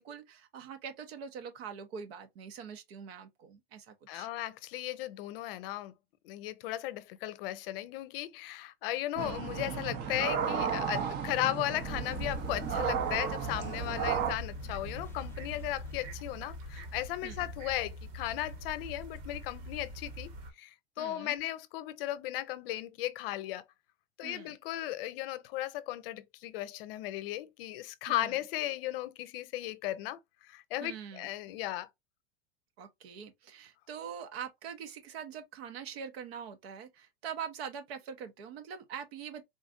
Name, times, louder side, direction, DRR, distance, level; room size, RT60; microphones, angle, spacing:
voice 1, 0.0-4.3 9.1-9.3 17.2-17.4 21.0-21.4 24.2-24.5 28.1-28.4 30.8-31.3 32.8-39.4, right 7 dB, 65° right, 1.0 m, -43 dB
voice 2, 4.1-5.9 6.2-23.6 24.2-31.9, left 15 dB, 60° left, 0.6 m, -36 dB
sound 1, 9.2-14.3, right 7 dB, 30° right, 0.6 m, -34 dB
sound 2, 10.4-16.1, left 2 dB, 10° left, 0.4 m, -53 dB
sound 3, 11.8-20.5, equal, 50° right, 1.2 m, -42 dB
3.9 x 2.5 x 2.5 m
hypercardioid pair, 125°, 33 cm